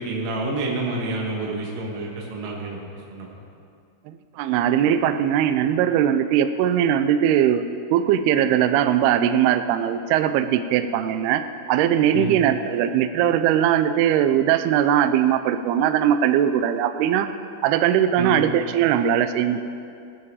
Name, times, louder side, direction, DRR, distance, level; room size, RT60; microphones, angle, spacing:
voice 1, 0.0-2.8 3.1-3.3 12.1-12.3 18.1-18.4, right 2 dB, 55° right, -2 dB, 2.2 m, -28 dB
voice 2, 4.1-11.4 11.7-17.3 17.6-19.6, right 10 dB, 85° right, 10 dB, 2.3 m, -20 dB
19.5 x 8.3 x 4.8 m, 2.4 s
omnidirectional pair, 5.3 m